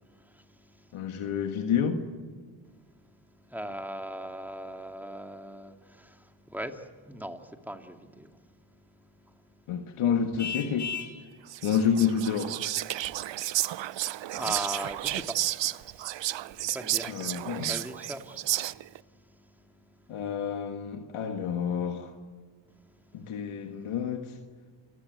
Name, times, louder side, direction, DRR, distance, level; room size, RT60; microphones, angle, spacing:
voice 1, 0.1-0.9 1.2-1.3 3.5-8.3 14.3-16.3 16.6-17.1 17.7-18.4 18.7-18.9, right 1 dB, 5° right, 2.3 m, -40 dB
voice 2, 0.9-2.1 9.7-10.9 11.6-12.6 17.1-17.7 20.1-22.1 23.1-24.4, left 7 dB, 80° left, 1.7 m, -29 dB
Vehicle horn car horn honking, 10.4-11.2, left 6 dB, 35° left, 2.3 m, -35 dB
Whispering, 11.5-19.0, right 14 dB, 65° right, 0.7 m, -32 dB
28.5 x 16.5 x 9.3 m
cardioid pair, 65°, 49 cm